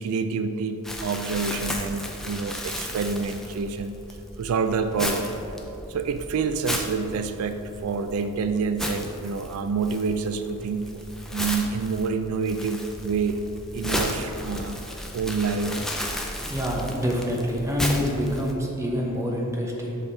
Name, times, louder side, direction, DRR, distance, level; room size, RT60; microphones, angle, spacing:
voice 1, 0.0-4.0 4.4-5.3 5.9-11.0 11.3-13.4 13.7-14.8 15.1-15.8, right 5 dB, 80° right, 9 dB, 0.3 m, -27 dB
Crumpling crinkling, 0.8-18.5, left 1 dB, ahead, 0.4 m, -34 dB
voice 2, 16.5-20.0, equal, 15° right, -2 dB, 0.8 m, -26 dB
5.7 x 5.5 x 4.1 m, 3.0 s
head